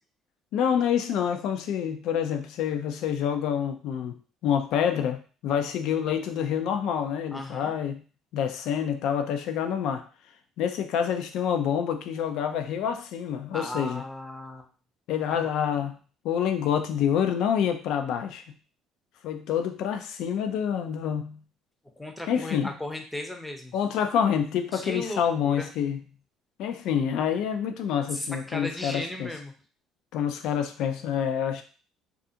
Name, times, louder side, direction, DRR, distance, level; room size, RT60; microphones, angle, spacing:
voice 1, 0.5-4.2 4.4-8.0 8.3-10.0 10.6-14.0 15.1-16.0 16.2-18.4 19.2-21.4 22.3-22.7 23.7-26.0 26.6-29.3 30.1-31.6, left 8 dB, 70° left, 7 dB, 0.4 m, -27 dB
voice 2, 7.3-7.7 13.5-14.7 15.3-15.5 22.0-23.7 24.7-25.7 28.1-29.5, left 1 dB, 10° left, 4 dB, 0.6 m, -36 dB
2.4 x 2.4 x 2.7 m, 0.38 s
supercardioid pair, 80°, 0 cm